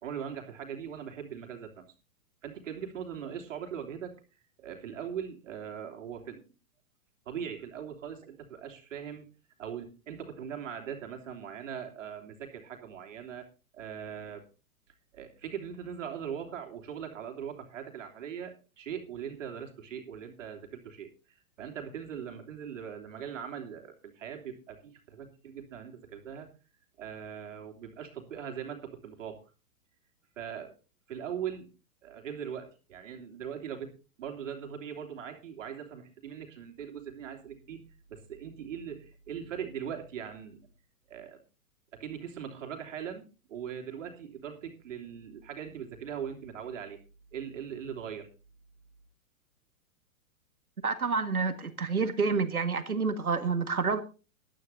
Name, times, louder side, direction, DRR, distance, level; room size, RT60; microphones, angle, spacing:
voice 1, 0.0-1.8 2.4-4.1 4.6-6.4 7.2-9.3 9.6-13.5 13.7-14.4 15.1-26.5 27.0-29.4 30.4-30.7 31.1-31.7 32.0-37.8 38.1-40.7 41.1-41.4 41.9-47.0 47.3-48.3, right 8 dB, 60° right, 3 dB, 3.0 m, -40 dB
voice 2, 50.8-54.0, right 4 dB, 85° right, 10 dB, 1.8 m, -28 dB
19.0 x 12.5 x 2.7 m, 0.32 s
figure-of-eight pair, 110°, 43 cm